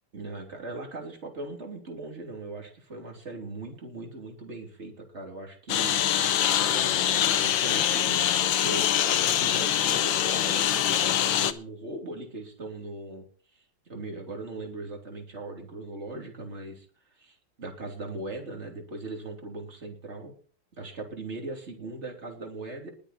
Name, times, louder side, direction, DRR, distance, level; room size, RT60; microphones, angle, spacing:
voice 1, 0.1-5.9 6.6-13.3 13.5-13.6 13.9-16.9 17.1-20.3 20.8-22.9, right 2 dB, 35° right, 2 dB, 3.4 m, -39 dB
Engine, 5.7-11.5, left 11 dB, 80° left, 1.6 m, -24 dB
21.0 x 8.1 x 4.3 m, 0.42 s
omnidirectional pair, 2.0 m